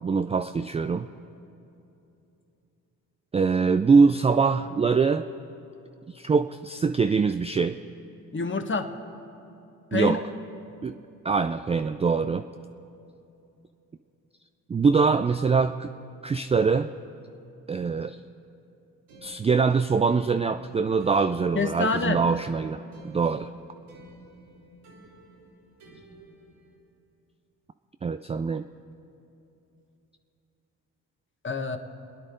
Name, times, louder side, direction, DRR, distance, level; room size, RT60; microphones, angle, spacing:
voice 1, 0.0-1.1 3.3-5.3 6.1-7.8 9.9-10.2 10.8-10.9 11.2-12.4 14.7-15.9 16.2-16.9 17.7-18.2 19.2-23.5 28.0-28.6, right 5 dB, 15° right, 9 dB, 0.3 m, -23 dB
voice 2, 8.3-8.9 9.9-10.2 21.5-22.2 31.4-31.8, left 4 dB, 30° left, 6 dB, 1.4 m, -26 dB
sound 1, 19.1-26.8, right 1 dB, 80° right, 2.8 m, -52 dB
29.0 x 10.0 x 3.9 m, 2.8 s
hypercardioid pair, 55°, 40 cm